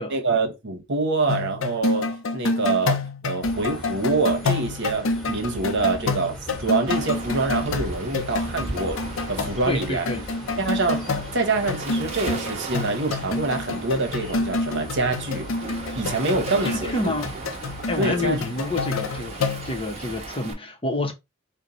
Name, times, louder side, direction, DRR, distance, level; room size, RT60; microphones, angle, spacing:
voice 1, 0.1-3.0 3.2-10.1 10.6-11.0 11.3-15.5 15.9-17.1 18.0-18.4, right 3 dB, 60° right, 1.1 m, -25 dB
sound 1, 1.3-19.7, left 3 dB, 70° left, 0.5 m, -28 dB
sound 2, 3.4-20.2, right 1 dB, 5° left, 1.4 m, -40 dB
Waves surf, 6.9-20.5, right 2 dB, 35° right, 1.0 m, -37 dB
voice 2, 9.7-10.2 16.6-17.3 17.9-21.1, left 2 dB, 25° left, 0.9 m, -28 dB
4.5 x 2.2 x 3.9 m
head